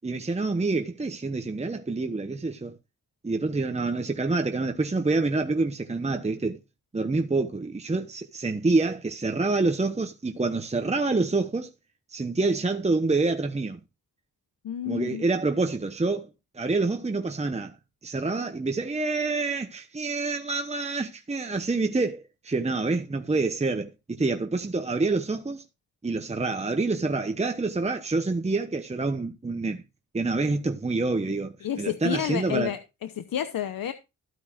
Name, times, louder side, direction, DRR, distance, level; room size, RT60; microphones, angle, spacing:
voice 1, 0.0-2.8 3.2-6.6 6.9-11.7 12.1-13.8 14.9-16.3 16.5-17.8 18.0-25.6 26.0-29.8 30.1-32.7, right 3 dB, 20° right, 1.0 m, -27 dB
voice 2, 14.6-15.2 31.6-33.9, left 10 dB, 85° left, 1.0 m, -30 dB
14.5 x 9.4 x 2.6 m
cardioid pair, 85°, 34 cm